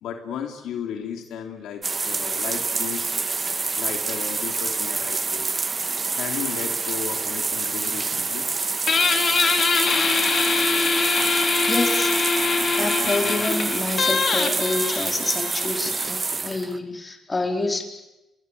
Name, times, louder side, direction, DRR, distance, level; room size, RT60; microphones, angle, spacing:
voice 1, 0.0-3.2 3.8-5.5 6.2-8.5 10.6-10.7, left 8 dB, 80° left, 5 dB, 3.2 m, -34 dB
sound 1, 1.8-16.8, right 4 dB, 30° right, 1.7 m, -27 dB
Guitar, 8.9-16.1, left 4 dB, 45° left, 3.4 m, -23 dB
voice 2, 11.6-12.1 12.8-17.8, left 2 dB, 25° left, 4 dB, 4.5 m, -27 dB
29.5 x 22.0 x 8.3 m, 0.95 s
cardioid pair, 90°, 0 cm